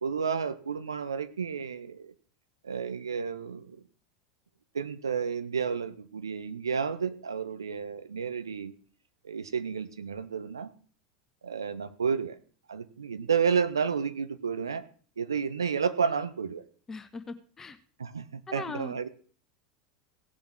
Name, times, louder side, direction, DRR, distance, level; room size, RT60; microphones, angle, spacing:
voice 1, 0.0-2.1 2.6-3.8 4.7-8.7 9.2-10.7 11.4-12.4 12.7-14.8 15.2-16.6 18.0-19.1, right 6 dB, 75° right, 12 dB, 1.1 m, -31 dB
voice 2, 16.9-17.8 18.5-18.9, left 4 dB, 20° left, 10 dB, 1.3 m, -39 dB
17.0 x 7.1 x 6.1 m, 0.43 s
figure-of-eight pair, 80°, 2 cm